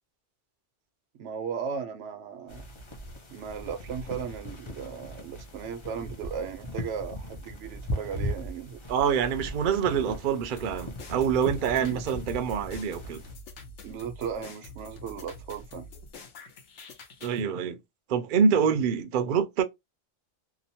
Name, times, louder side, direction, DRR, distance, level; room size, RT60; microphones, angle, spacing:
voice 1, 1.1-2.6 3.3-8.8 11.8-12.0 13.8-15.9, right 7 dB, 80° right, 0.9 m, -36 dB
sound 1, 2.5-13.3, left 1 dB, 35° left, 0.5 m, -38 dB
voice 2, 8.9-13.2 17.2-17.8 18.1-19.6, right 7 dB, 60° right, 0.6 m, -26 dB
sound 2, 10.6-17.4, left 2 dB, 80° left, 1.0 m, -46 dB
2.8 x 2.0 x 2.7 m
omnidirectional pair, 1.2 m